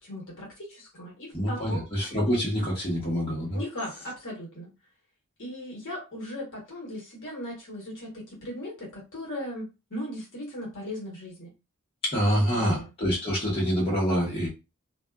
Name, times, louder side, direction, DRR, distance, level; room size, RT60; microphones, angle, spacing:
voice 1, 0.0-1.9 3.5-4.7 5.4-11.5 12.3-12.9, left 1 dB, 60° left, -3 dB, 1.3 m, -38 dB
voice 2, 1.3-3.6 12.0-14.5, equal, 25° left, -6 dB, 1.1 m, -26 dB
2.5 x 2.4 x 2.2 m, 0.27 s
head